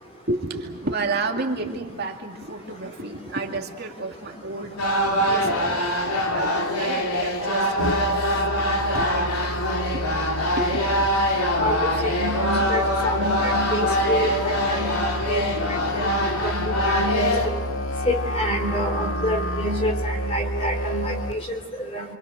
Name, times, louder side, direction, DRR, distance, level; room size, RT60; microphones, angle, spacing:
voice 1, 0.3-9.6 9.9-10.0 10.6-11.2 11.7-12.1 17.9-18.1, right 2 dB, 45° right, 2 dB, 2.4 m, -32 dB
sound 1, 4.8-17.5, equal, 85° left, 3.6 m, -24 dB
Musical instrument, 7.8-21.3, equal, 60° left, 1.7 m, -30 dB
voice 2, 11.6-16.1 16.4-17.3 18.0-22.1, equal, 25° left, 4 dB, 3.4 m, -28 dB
28.0 x 25.5 x 6.6 m, 1.3 s
head